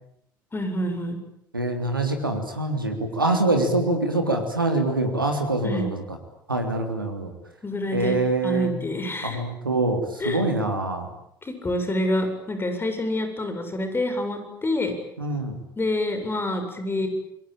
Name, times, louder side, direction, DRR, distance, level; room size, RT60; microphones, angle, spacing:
voice 1, 0.5-1.2 5.6-5.9 7.6-8.2 8.4-9.4 10.2-10.4 11.4-14.9 15.8-17.1, left 1 dB, 20° left, 7 dB, 7.8 m, -27 dB
voice 2, 1.5-6.0 6.5-7.3 7.9-8.7 9.2-11.1 15.2-15.6, right 2 dB, 90° right, 4 dB, 3.3 m, -24 dB
28.5 x 22.5 x 9.0 m, 0.73 s
figure-of-eight pair, 65°, 11 cm